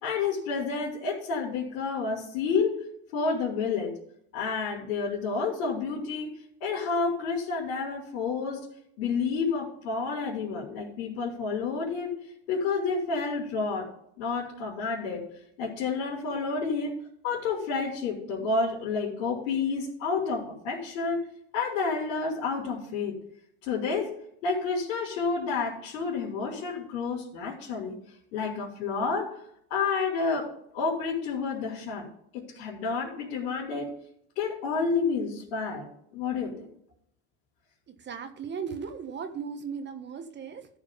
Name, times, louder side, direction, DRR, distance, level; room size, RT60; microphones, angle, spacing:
voice 1, 0.0-2.8 3.1-3.9 4.3-6.3 6.6-8.6 9.0-12.1 12.5-13.9 14.2-15.2 15.6-17.0 17.2-21.3 21.5-23.1 23.6-24.1 24.4-28.0 28.3-29.4 29.7-30.5 30.7-32.1 32.3-33.9 34.4-35.9 36.1-36.7, left 4 dB, 75° left, -8 dB, 4.2 m, -29 dB
voice 2, 37.9-40.7, right 6 dB, 30° right, 7 dB, 1.4 m, -37 dB
14.0 x 5.1 x 5.2 m, 0.70 s
supercardioid pair, 100°, 34 cm